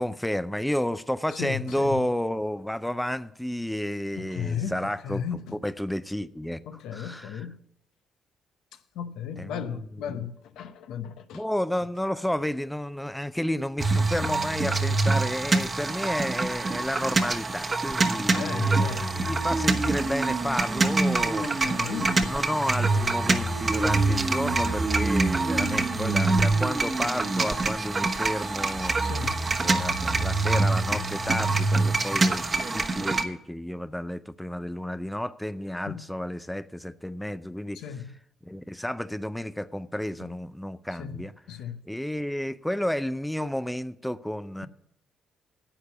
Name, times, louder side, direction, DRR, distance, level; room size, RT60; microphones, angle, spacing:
voice 1, 0.0-5.2 5.6-6.6 6.9-7.5 9.4-9.8 10.1-10.3 11.3-18.9 19.2-29.1 29.6-37.8 38.4-41.3 41.9-44.7, left 1 dB, 5° left, 0.5 m, -31 dB
voice 2, 1.4-2.0 4.2-5.6 6.7-7.5 8.9-11.4 18.1-19.1 21.4-22.2 29.0-29.4 35.9-36.0 37.7-38.1 41.0-41.8, left 8 dB, 85° left, 0.8 m, -35 dB
sound 1, 13.8-33.2, right 3 dB, 30° right, 1.0 m, -25 dB
10.0 x 8.2 x 7.0 m
cardioid pair, 90°, 0 cm